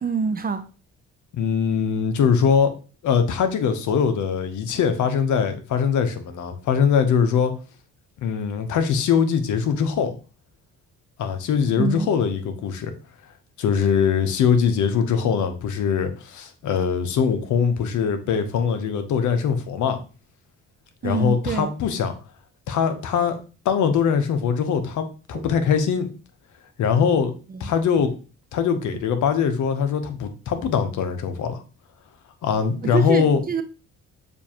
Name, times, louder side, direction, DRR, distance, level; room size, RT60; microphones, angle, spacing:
voice 1, 0.0-0.7 11.7-12.1 21.0-21.7 25.3-25.5 27.5-27.7 32.8-33.6, right 5 dB, 30° right, 0.5 m, -26 dB
voice 2, 1.3-2.7 3.0-7.5 8.2-10.1 11.2-12.9 13.6-20.0 21.0-22.1 22.7-23.4 23.6-26.1 26.8-27.3 27.6-28.1 28.5-31.6 32.4-33.4, left 7 dB, 75° left, 0.8 m, -22 dB
6.8 x 2.6 x 2.8 m
cardioid pair, 90°, 30 cm